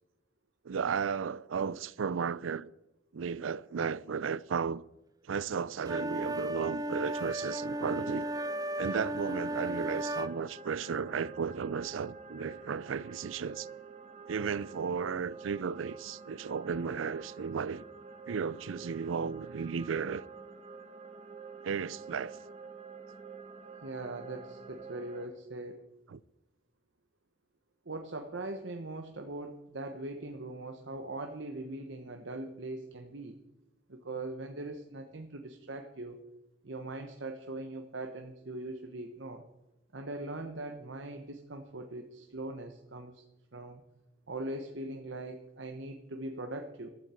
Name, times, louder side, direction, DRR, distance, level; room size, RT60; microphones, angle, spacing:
voice 1, 0.6-2.7 3.1-4.8 5.2-8.3 8.8-13.7 14.3-17.8 18.3-20.3 21.6-22.4 26.1-26.2, right 6 dB, 85° right, 0.5 m, -34 dB
sound 1, 5.8-10.3, right 1 dB, 20° right, 0.7 m, -35 dB
sound 2, 7.1-25.3, right 4 dB, 35° right, 1.1 m, -49 dB
voice 2, 23.8-25.8 27.8-33.4 33.9-36.2 36.6-39.4 39.9-43.2 43.5-43.8 44.3-46.9, right 2 dB, 65° right, 1.1 m, -41 dB
14.5 x 13.0 x 4.4 m
head